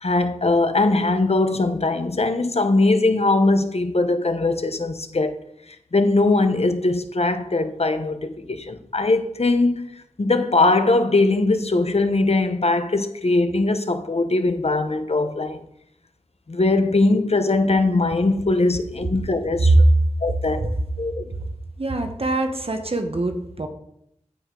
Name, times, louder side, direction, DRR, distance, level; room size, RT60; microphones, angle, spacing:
voice 1, 0.0-5.4 5.9-9.9 10.2-15.6 16.5-19.7 20.2-21.2, left 2 dB, 55° left, 0.9 m, -21 dB
voice 2, 21.8-23.7, right 2 dB, 50° right, 1.0 m, -21 dB
14.0 x 5.0 x 3.8 m
wide cardioid pair, 45°, 12 cm